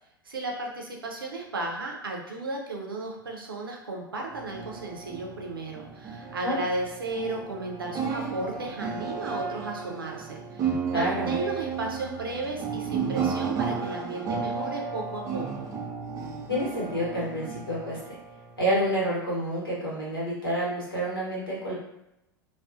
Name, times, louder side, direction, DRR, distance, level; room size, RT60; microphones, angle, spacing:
voice 1, 0.2-15.7, right 2 dB, 75° right, 0 dB, 0.6 m, -34 dB
sound 1, 4.3-19.0, right 6 dB, 30° right, 0.4 m, -33 dB
voice 2, 10.9-11.4 16.5-18.0 18.6-21.7, equal, 80° left, -6 dB, 1.1 m, -28 dB
2.3 x 2.3 x 2.5 m, 0.87 s
figure-of-eight pair, 85°, 12 cm